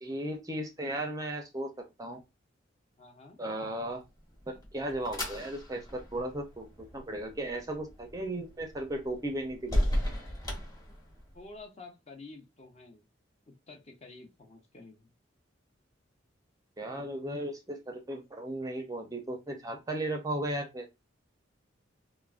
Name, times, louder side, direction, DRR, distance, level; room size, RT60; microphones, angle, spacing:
voice 1, 0.0-2.2 3.4-4.0 4.5-9.8 16.8-20.9, right 1 dB, 20° right, 0.4 m, -36 dB
voice 2, 3.0-3.4 11.3-13.0 13.5-15.1, left 3 dB, 35° left, 0.6 m, -50 dB
sound 1, 4.1-11.5, equal, 20° left, 1.1 m, -36 dB
3.5 x 2.0 x 2.3 m
head